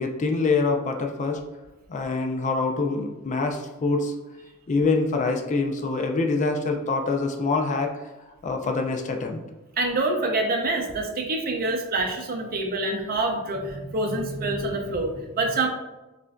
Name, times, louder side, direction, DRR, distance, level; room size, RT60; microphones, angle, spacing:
voice 1, 0.0-1.4 1.9-4.1 4.7-8.1 8.4-9.4, left 3 dB, 35° left, 3 dB, 0.4 m, -25 dB
voice 2, 9.8-15.7, right 2 dB, 45° right, 3 dB, 0.5 m, -26 dB
5.7 x 2.5 x 2.2 m, 1.1 s
head